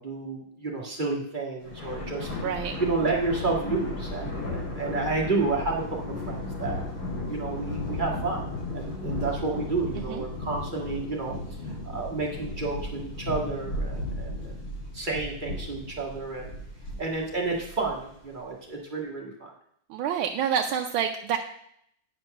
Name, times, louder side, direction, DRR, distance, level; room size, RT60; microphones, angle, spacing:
voice 1, 0.0-2.3 2.8-6.8 7.3-11.3 11.6-14.6 14.9-16.5 17.0-19.5, right 3 dB, 25° right, -1 dB, 1.7 m, -31 dB
Thunder, 1.6-18.2, left 2 dB, 90° left, 5.6 m, -35 dB
voice 2, 2.4-2.7 10.1-10.2 19.9-21.4, right 8 dB, 80° right, 3 dB, 1.4 m, -27 dB
9.8 x 4.6 x 6.4 m, 0.71 s
omnidirectional pair, 2.2 m